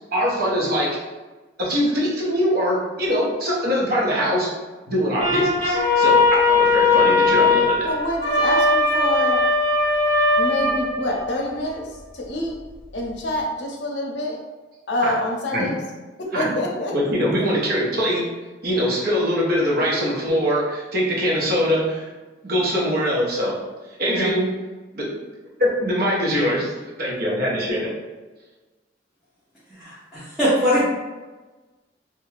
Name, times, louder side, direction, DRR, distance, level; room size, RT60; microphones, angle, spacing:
voice 1, 0.1-1.0 1.6-4.5 4.9-6.2 6.5-7.9 15.0-15.1 15.5-15.7 16.3-16.6 16.9-18.2 18.6-22.0 22.4-23.6 24.0-24.5 24.9-25.1 25.6-26.7 27.0-28.0, equal, 55° right, -4 dB, 0.8 m, -22 dB
sound 1, 5.2-11.4, left 3 dB, 25° right, 1.3 m, -19 dB
voice 2, 7.8-9.4 10.4-12.6 12.9-14.4 14.9-15.8 16.2-16.9 24.1-24.3, left 1 dB, 65° left, -1 dB, 0.6 m, -27 dB
voice 3, 29.8-30.9, equal, ahead, -12 dB, 0.6 m, -21 dB
2.5 x 2.2 x 3.1 m, 1.2 s
head